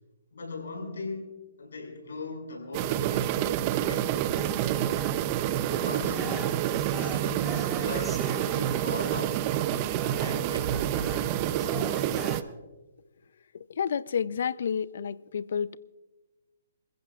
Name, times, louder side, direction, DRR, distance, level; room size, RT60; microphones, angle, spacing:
voice 1, 0.3-4.1 5.6-6.6 6.9-9.5 10.0-12.4, left 3 dB, 85° left, 6.1 m, -40 dB
sound 1, 2.7-12.4, right 12 dB, 30° right, 0.6 m, -28 dB
sound 2, 4.4-12.4, left 2 dB, 5° left, 1.5 m, -43 dB
voice 2, 13.5-15.8, left 7 dB, 65° left, 0.5 m, -30 dB
28.5 x 15.0 x 2.4 m
hypercardioid pair, 155°, 0 cm